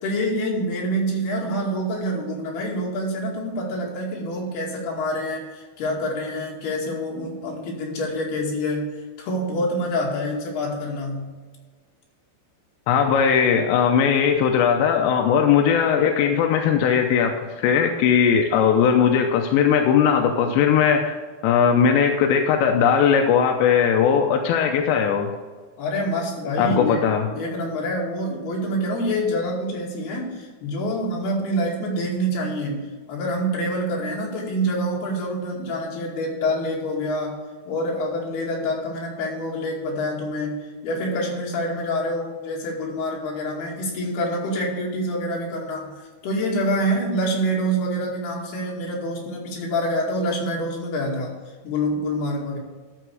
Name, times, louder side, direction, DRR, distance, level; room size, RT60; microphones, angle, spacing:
voice 1, 0.0-8.9 9.2-11.3 25.8-27.1 27.3-37.4 37.7-51.3 51.6-52.6, equal, 70° left, -2 dB, 4.2 m, -26 dB
voice 2, 12.9-21.2 21.4-25.3 26.6-27.3, left 7 dB, 90° left, 3 dB, 3.1 m, -19 dB
12.5 x 5.9 x 4.8 m, 1.4 s
omnidirectional pair, 4.9 m